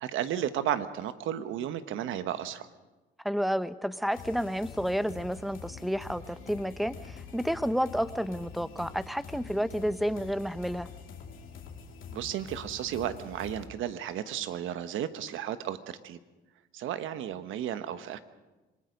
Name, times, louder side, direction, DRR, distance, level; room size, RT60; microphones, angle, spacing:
voice 1, 0.0-2.7 12.1-15.8 16.0-16.2 16.7-18.2, right 10 dB, 85° right, 11 dB, 1.2 m, -33 dB
voice 2, 3.2-10.9, equal, ahead, 14 dB, 0.8 m, -30 dB
sound 1, 4.1-13.7, left 6 dB, 85° left, 3.0 m, -46 dB
26.5 x 20.0 x 5.3 m, 1.1 s
cardioid pair, 90°, 20 cm